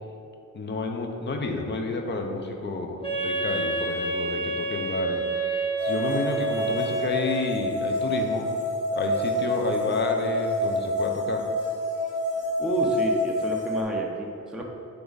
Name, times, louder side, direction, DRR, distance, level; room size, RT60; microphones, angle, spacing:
voice 1, 0.5-8.5 8.9-11.4, left 3 dB, 35° left, 3 dB, 0.6 m, -30 dB
Wind instrument woodwind instrument, 3.0-7.5, right 3 dB, 15° left, 1.4 m, -29 dB
sound 1, 5.8-13.8, left 1 dB, 70° left, 1.4 m, -28 dB
voice 2, 12.6-14.6, right 1 dB, ahead, -1 dB, 0.5 m, -30 dB
8.4 x 3.5 x 4.0 m, 2.6 s
wide cardioid pair, 150°, 31 cm